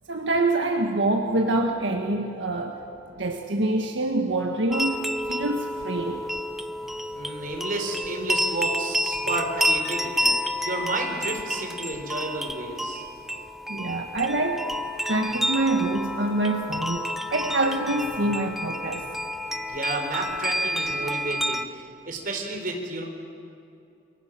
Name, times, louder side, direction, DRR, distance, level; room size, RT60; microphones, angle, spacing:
voice 1, 0.1-2.8 3.2-6.2 13.7-14.7 15.0-19.1, right 2 dB, 85° right, 3 dB, 1.6 m, -26 dB
sound 1, 4.7-21.7, equal, ahead, 0.8 m, -29 dB
voice 2, 7.1-13.0 19.7-23.0, right 2 dB, 50° right, 2 dB, 4.5 m, -32 dB
29.5 x 23.0 x 7.6 m, 2.6 s
head